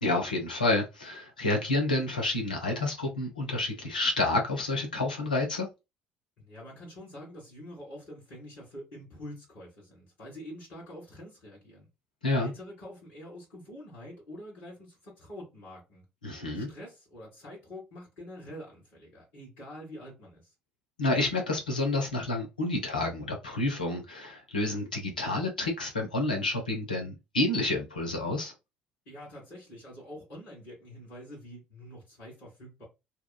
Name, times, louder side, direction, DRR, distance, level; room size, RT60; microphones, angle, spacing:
voice 1, 0.0-5.7 12.2-12.5 16.2-16.7 21.0-28.5, left 2 dB, 85° left, 0.6 m, -29 dB
voice 2, 6.4-11.9 12.3-16.0 16.5-20.5 29.0-32.8, equal, 70° left, 1.5 m, -46 dB
2.8 x 2.3 x 2.2 m
figure-of-eight pair, 50°, 4 cm